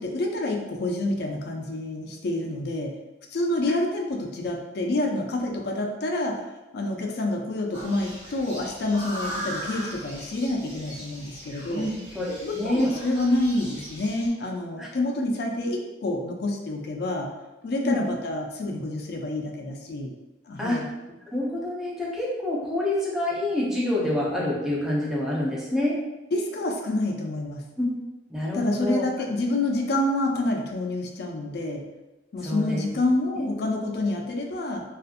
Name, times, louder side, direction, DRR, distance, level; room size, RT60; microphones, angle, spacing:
voice 1, 0.0-2.9 3.3-6.4 6.7-11.9 12.4-17.3 17.6-20.1 20.5-20.9 26.3-27.6 28.5-31.8 32.3-34.8, left 2 dB, 55° left, 2 dB, 0.4 m, -28 dB
sound 1, 7.7-14.3, equal, 30° right, 1.1 m, -39 dB
voice 2, 11.7-12.9 14.8-14.9 17.8-18.0 20.6-20.8 21.3-26.0 27.8-27.9 28.3-29.0 32.4-32.8 33.4-33.5, left 1 dB, ahead, -6 dB, 0.5 m, -27 dB
2.5 x 2.4 x 2.5 m, 1.1 s
head